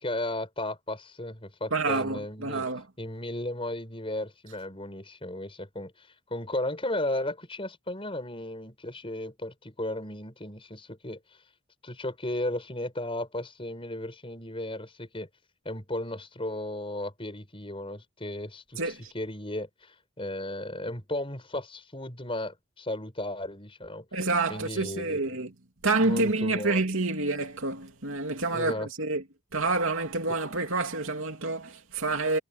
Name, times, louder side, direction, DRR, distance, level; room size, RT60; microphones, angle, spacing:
voice 1, 0.0-2.7 3.0-11.2 11.8-15.3 15.6-24.1 24.5-25.2 26.0-26.8 28.5-28.9 30.3-30.4, left 1 dB, 25° left, 5.2 m, -35 dB
voice 2, 1.7-2.8 18.8-19.1 24.1-25.5 25.8-29.2 29.5-32.4, right 3 dB, 65° right, 2.9 m, -28 dB
head